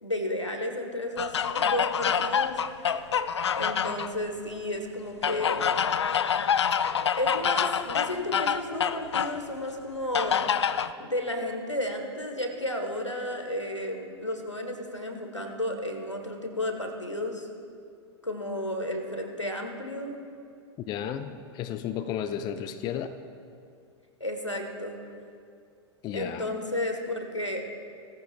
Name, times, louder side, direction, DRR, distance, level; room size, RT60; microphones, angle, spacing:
voice 1, 0.0-3.0 3.6-5.7 7.2-10.4 11.0-17.5 18.2-20.2 24.2-25.0 26.1-27.6, left 1 dB, 90° left, 4 dB, 1.5 m, -32 dB
sound 1, 1.2-4.1 5.2-9.4 10.1-10.9, left 7 dB, 70° left, 0.5 m, -26 dB
voice 2, 20.9-23.2 26.0-26.5, left 9 dB, 30° left, 10 dB, 0.6 m, -33 dB
18.5 x 14.5 x 2.5 m, 2.4 s
figure-of-eight pair, 95°, 15 cm